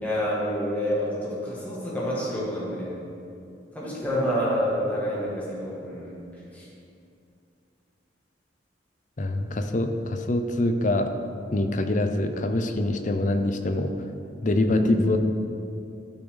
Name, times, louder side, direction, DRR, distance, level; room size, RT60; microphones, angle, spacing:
voice 1, 0.0-2.9 3.7-6.2 6.5-6.7, equal, 10° left, -7 dB, 2.1 m, -28 dB
voice 2, 9.2-11.1 11.5-13.9 14.4-15.2, left 1 dB, 45° left, 7 dB, 0.6 m, -24 dB
12.0 x 6.1 x 3.9 m, 2.6 s
head